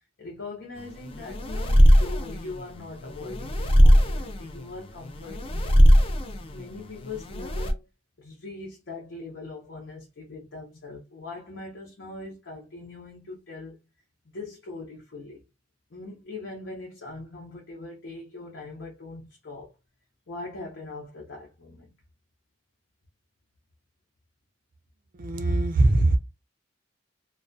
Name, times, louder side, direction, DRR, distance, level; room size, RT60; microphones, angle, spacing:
voice 1, 0.2-5.7 6.3-7.9 8.2-13.8 14.3-15.4 15.9-19.7 20.3-21.9, left 3 dB, 70° left, 0.7 m, -41 dB
sound 1, 0.8-7.7, equal, 30° left, 0.4 m, -20 dB
voice 2, 25.1-26.2, right 2 dB, 50° right, 0.4 m, -21 dB
2.3 x 2.2 x 2.5 m
head